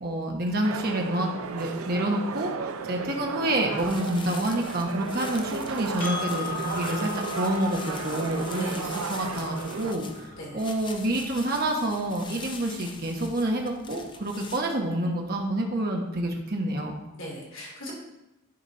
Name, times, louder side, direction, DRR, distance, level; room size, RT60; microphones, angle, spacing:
voice 1, 0.0-10.3 10.5-17.0, right 1 dB, 45° right, 1 dB, 1.0 m, -28 dB
sound 1, 0.6-9.9, right 5 dB, 85° right, 0.5 m, -34 dB
sound 2, 3.8-14.6, left 4 dB, 20° left, 0.5 m, -44 dB
Percussion, 6.0-10.8, left 6 dB, 40° left, 2.6 m, -38 dB
voice 2, 17.1-17.9, equal, 70° left, -4 dB, 2.9 m, -38 dB
11.0 x 4.1 x 4.1 m, 0.94 s
head